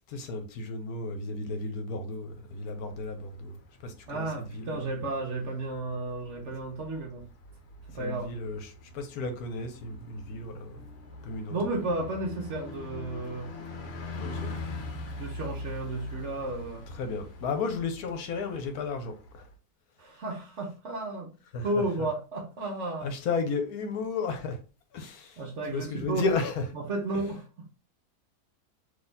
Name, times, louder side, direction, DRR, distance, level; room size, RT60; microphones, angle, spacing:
voice 1, 0.1-3.5 3.8-4.2 8.0-8.6 8.9-10.8 11.3-11.6 14.2-14.5 17.0-19.1 21.5-21.6 23.0-24.6 24.9-25.3 25.7-26.6, left 4 dB, 70° left, 1.1 m, -33 dB
Bus, 2.5-19.5, left 2 dB, 50° left, 0.8 m, -43 dB
voice 2, 4.1-7.2 7.9-8.3 11.5-13.5 14.1-14.6 15.2-16.8 20.0-21.3 21.6-23.2 25.4-26.3 26.7-27.7, right 2 dB, 55° right, 1.0 m, -33 dB
4.0 x 2.9 x 3.9 m
omnidirectional pair, 1.8 m